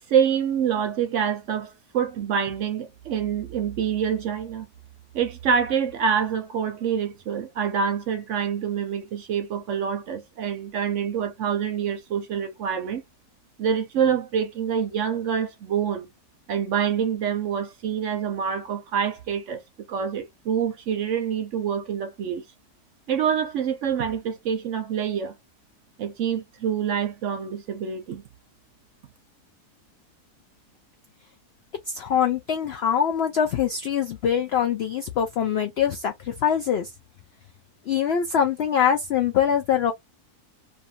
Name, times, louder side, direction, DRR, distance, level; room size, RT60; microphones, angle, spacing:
voice 1, 0.1-4.7 5.1-13.0 13.6-16.1 16.5-19.6 19.9-22.4 23.1-25.4 26.0-28.2, right 7 dB, 65° right, 0.8 m, -26 dB
voice 2, 31.9-36.9 37.9-39.9, left 8 dB, 85° left, 0.5 m, -23 dB
2.6 x 2.6 x 2.5 m
omnidirectional pair, 1.6 m